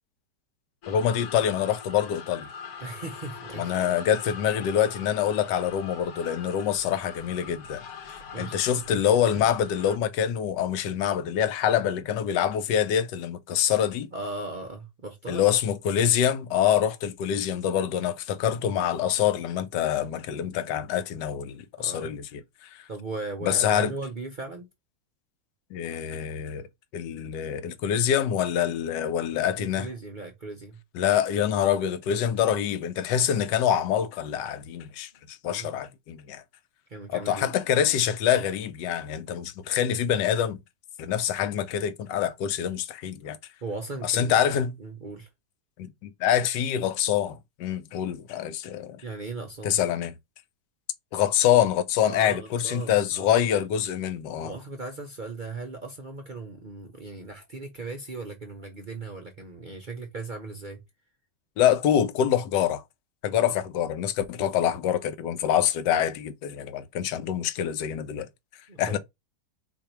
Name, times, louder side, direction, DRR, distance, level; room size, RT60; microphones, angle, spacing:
sound 1, 0.8-10.0, left 6 dB, 70° left, 1.2 m, -42 dB
voice 1, 0.9-2.5 3.6-7.8 8.1-14.1 15.3-22.8 23.4-23.9 25.7-26.6 26.9-29.9 30.9-36.4 37.1-40.6 41.0-43.4 44.0-44.7 45.8-49.0 49.6-50.1 51.1-54.5 61.6-62.8 63.2-68.3 68.8-69.0, left 9 dB, 85° left, 1.3 m, -25 dB
voice 2, 2.8-3.7 8.3-8.8 14.1-15.4 21.8-22.1 22.9-24.7 29.6-30.8 35.5-35.8 36.9-37.5 43.6-45.3 49.0-49.8 52.1-53.3 54.4-60.8 63.5-63.6 68.7-68.9, right 3 dB, 55° right, 0.5 m, -38 dB
4.6 x 2.6 x 4.3 m
omnidirectional pair, 1.8 m